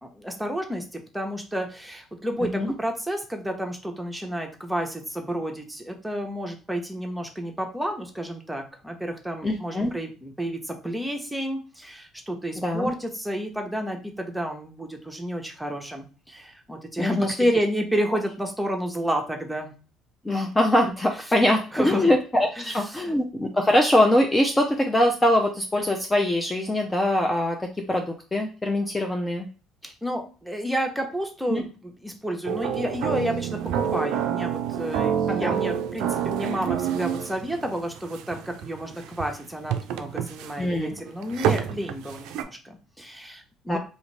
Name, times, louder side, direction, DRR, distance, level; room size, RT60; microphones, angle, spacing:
voice 1, 0.0-19.7 21.7-22.1 22.6-23.1 30.0-43.8, equal, 5° right, 2 dB, 0.9 m, -30 dB
voice 2, 9.4-9.9 12.6-12.9 17.0-17.3 20.2-28.0 28.3-29.5 29.8-29.9 31.5-31.6 35.3-35.6 40.6-41.0 43.7-43.8, left 1 dB, 15° left, 2 dB, 0.5 m, -23 dB
sound 1, 32.4-42.4, right 8 dB, 75° right, 0.4 m, -28 dB
2.5 x 2.5 x 3.2 m, 0.36 s
supercardioid pair, 75°, 0 cm